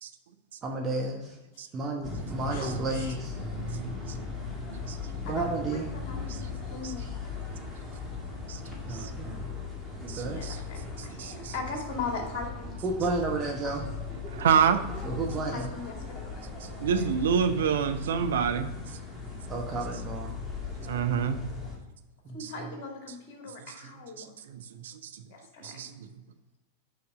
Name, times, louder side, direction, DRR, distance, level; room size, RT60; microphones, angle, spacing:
voice 1, 0.6-1.4 1.7-3.3 5.2-5.9 8.8-9.5 10.0-10.4 12.8-13.8 15.0-15.7 19.5-20.3 22.2-22.4, right 3 dB, 25° right, 0 dB, 1.0 m, -32 dB
sound 1, 2.0-21.8, left 4 dB, 5° left, 1.8 m, -38 dB
voice 2, 2.5-3.2 5.2-5.4 5.7-7.2 10.2-12.7 13.6-13.7 15.3-16.4 16.7-16.8 20.9-21.0 22.3-24.3 25.3-25.7, left 4 dB, 40° left, 1 dB, 2.3 m, -39 dB
voice 3, 3.6-4.0 4.7-5.0 8.5-9.1 10.1-10.6 11.2-11.5 14.3-14.8 16.8-18.7 20.9-21.4 24.5-24.9 25.6-26.1, right 7 dB, 60° right, 8 dB, 0.6 m, -27 dB
6.8 x 5.3 x 5.0 m, 1.1 s
figure-of-eight pair, 90°, 0 cm